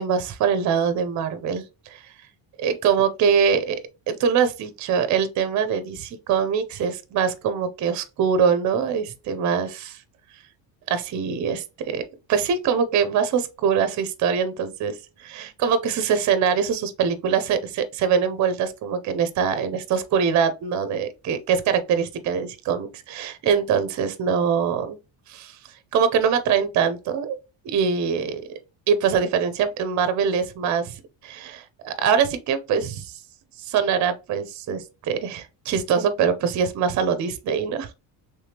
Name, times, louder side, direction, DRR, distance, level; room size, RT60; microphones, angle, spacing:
voice 1, 0.0-2.0 2.6-3.8 4.1-10.0 10.9-12.0 12.3-25.0 25.3-25.6 25.9-27.4 27.6-28.4 28.9-33.2 33.6-37.9, right 7 dB, 40° right, 0.5 m, -23 dB
3.4 x 3.2 x 2.8 m
cardioid pair, 155°, 47 cm